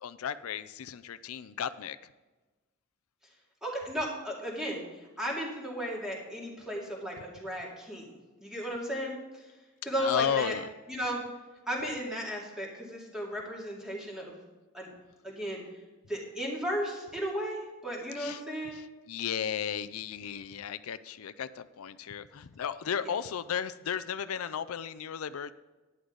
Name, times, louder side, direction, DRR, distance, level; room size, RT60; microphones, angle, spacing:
voice 1, 0.0-2.0 10.0-10.7 18.2-18.4 18.7-25.5, left 8 dB, 90° left, 13 dB, 0.4 m, -34 dB
voice 2, 3.6-4.8 5.2-8.1 8.4-9.2 9.8-10.6 10.9-11.2 11.7-14.4 14.7-14.9 15.2-15.6 16.1-18.8 23.0-23.1, equal, 5° right, -4 dB, 2.5 m, -35 dB
11.5 x 9.7 x 3.9 m, 1.2 s
head